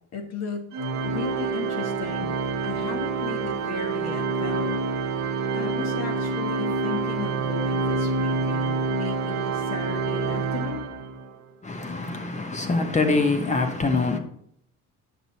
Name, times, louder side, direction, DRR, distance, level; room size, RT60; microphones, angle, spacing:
voice 1, 0.1-0.7 1.0-2.3 2.6-4.8 5.5-10.8, left 5 dB, 55° left, 1.6 m, -35 dB
Organ, 0.7-11.4, right 4 dB, 60° right, 1.1 m, -27 dB
voice 2, 11.6-14.2, left 3 dB, 20° left, 1.0 m, -24 dB
9.1 x 6.0 x 4.1 m
cardioid pair, 135°, 32 cm